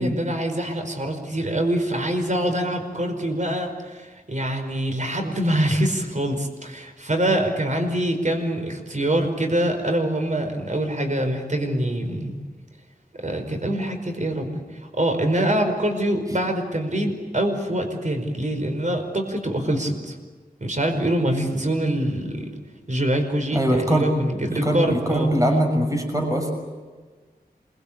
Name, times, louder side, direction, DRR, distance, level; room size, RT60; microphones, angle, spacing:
voice 1, 0.0-12.3 13.2-20.2 20.6-22.5 22.9-25.3, right 1 dB, 50° right, 5 dB, 5.1 m, -24 dB
voice 2, 23.5-24.1 24.6-26.5, equal, 20° right, 3 dB, 6.3 m, -22 dB
27.5 x 23.5 x 8.8 m, 1.4 s
wide cardioid pair, 70°, 16 cm